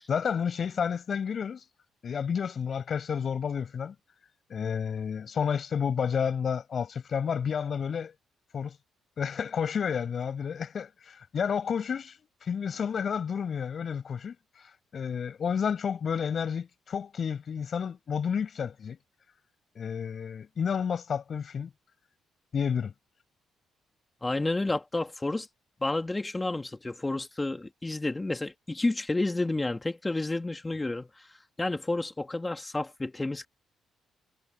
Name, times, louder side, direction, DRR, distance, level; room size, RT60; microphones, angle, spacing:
voice 1, 0.1-1.6 2.0-3.9 4.5-8.1 8.5-8.7 9.2-12.1 12.4-14.3 14.9-19.0 19.8-21.7 22.5-22.9, left 7 dB, 50° left, 5.7 m, -30 dB
voice 2, 24.2-25.5 25.8-31.1 31.6-33.5, left 2 dB, 15° left, 2.4 m, -30 dB
cardioid pair, 90°, 0 cm